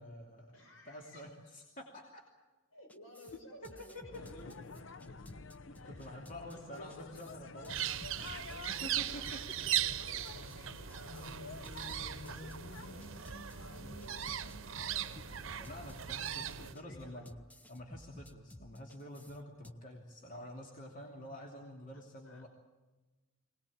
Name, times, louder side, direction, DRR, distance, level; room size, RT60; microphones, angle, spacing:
voice 1, 0.0-2.2 3.9-4.0 5.7-7.9 8.7-9.4 15.0-17.4 17.7-22.5, equal, 40° left, 0 dB, 2.9 m, -48 dB
voice 2, 0.5-1.3 2.7-5.2 5.8-6.9 8.2-11.5 11.8-13.2 13.5-14.3 16.5-17.3 21.9-22.5, left 1 dB, 85° left, 3 dB, 5.6 m, -56 dB
sound 1, 2.9-19.7, left 1 dB, 10° left, 0.8 m, -56 dB
sound 2, 4.1-16.7, left 3 dB, 65° left, 0.8 m, -51 dB
sound 3, 7.7-16.7, right 11 dB, 70° right, 0.8 m, -39 dB
24.0 x 19.0 x 8.7 m, 1.2 s
head